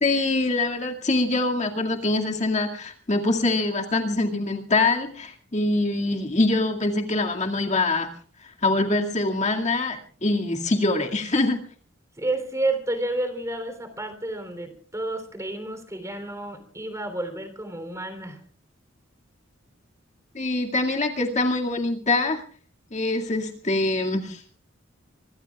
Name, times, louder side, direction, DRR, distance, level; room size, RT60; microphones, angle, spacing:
voice 1, 0.0-8.1 8.4-11.6 20.3-22.4 22.9-24.4, left 2 dB, 35° left, 2 dB, 2.2 m, -24 dB
voice 2, 12.2-18.4, right 2 dB, 15° right, 8 dB, 3.3 m, -30 dB
25.0 x 22.5 x 2.4 m, 0.44 s
head